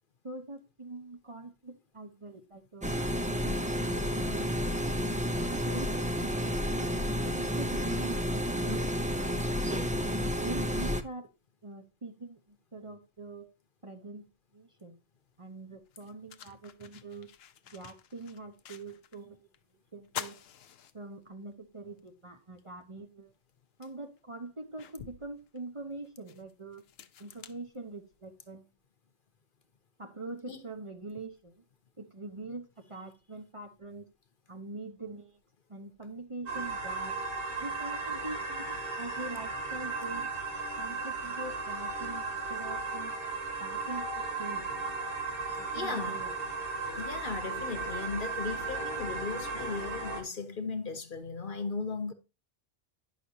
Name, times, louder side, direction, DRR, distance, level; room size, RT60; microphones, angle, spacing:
voice 1, 0.2-2.9 3.2-3.6 3.9-4.6 5.4-6.9 7.2-8.9 9.3-9.8 10.4-11.3 11.6-13.5 13.8-14.3 14.5-15.0 15.4-17.3 17.7-19.4 19.9-20.4 20.9-23.3 23.8-26.9 27.2-28.6 30.0-31.5 32.0-34.0 34.5-35.4 35.7-37.2 37.6-40.3 40.8-43.1 43.6-44.7 45.6-46.3, right 2 dB, 30° right, 0.9 m, -44 dB
sound 1, 2.8-11.0, equal, 10° right, 0.3 m, -31 dB
sound 2, 15.2-15.3 15.9-19.2 19.5-19.6 20.0-21.5 22.0-22.1 23.5-23.6 24.2-28.4, left 9 dB, 70° left, 0.8 m, -47 dB
sound 3, 36.5-50.2, right 3 dB, 60° right, 1.6 m, -35 dB
voice 2, 45.5-46.2 46.9-52.1, left 4 dB, 55° left, 1.0 m, -37 dB
9.8 x 6.2 x 2.7 m
omnidirectional pair, 1.1 m